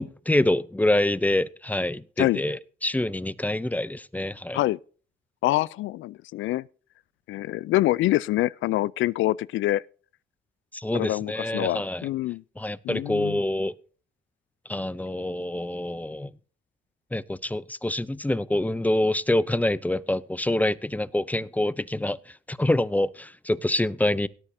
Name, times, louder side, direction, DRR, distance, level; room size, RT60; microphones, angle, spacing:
voice 1, 0.0-4.6 10.7-12.1 12.6-13.7 14.7-16.3 17.1-24.3, left 1 dB, 10° left, 0.6 m, -26 dB
voice 2, 5.4-6.7 7.3-9.8 10.9-12.4 12.8-13.4, left 16 dB, 80° left, 0.4 m, -25 dB
18.0 x 9.8 x 2.7 m
cardioid pair, 90°, 20 cm